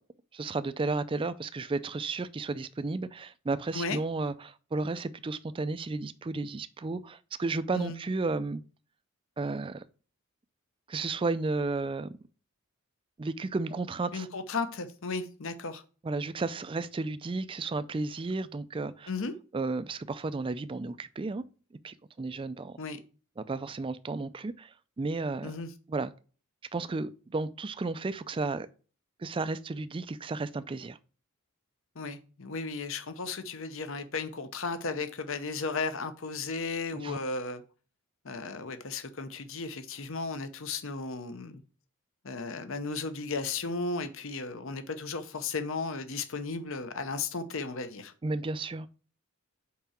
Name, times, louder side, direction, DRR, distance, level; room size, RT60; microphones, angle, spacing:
voice 1, 0.3-8.6 9.4-9.8 10.9-12.1 13.2-14.3 16.0-19.1 19.5-21.4 21.8-22.8 23.4-25.5 25.9-26.1 26.7-28.7 29.2-31.0 36.9-37.2 48.2-48.9, right 3 dB, 25° right, 0.3 m, -33 dB
voice 2, 14.1-15.8 19.1-19.3 22.8-23.0 25.4-25.7 31.9-37.6 38.2-41.6 42.2-48.1, left 4 dB, 60° left, 0.8 m, -35 dB
5.8 x 4.9 x 4.3 m
head